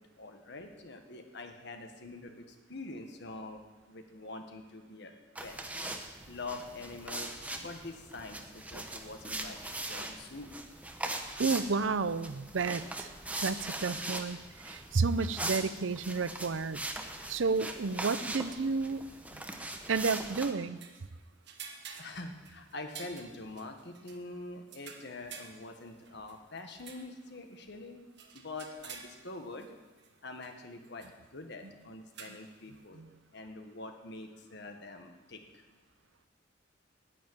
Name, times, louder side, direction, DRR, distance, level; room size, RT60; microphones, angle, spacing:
voice 1, 0.2-3.6 3.9-5.1 5.4-5.6 6.3-10.5 22.0-28.0 28.3-29.7 30.2-31.1 31.3-33.0 33.3-35.4, left 2 dB, 65° left, 5 dB, 1.5 m, -45 dB
sound 1, 5.3-20.5, right 2 dB, 10° right, 1.0 m, -40 dB
voice 2, 11.4-13.1 13.4-14.4 14.6-16.8 17.3-19.1 19.9-20.8 31.6-31.7 32.9-33.1, right 4 dB, 85° right, 15 dB, 0.6 m, -31 dB
sound 2, 19.8-21.1 21.5-24.2 24.7-27.1 27.6-27.7 28.2-29.7 30.0-30.1 30.4-30.5 30.8-31.1 32.1-32.6, right 6 dB, 65° right, 1.5 m, -50 dB
10.0 x 9.6 x 9.2 m, 1.3 s
head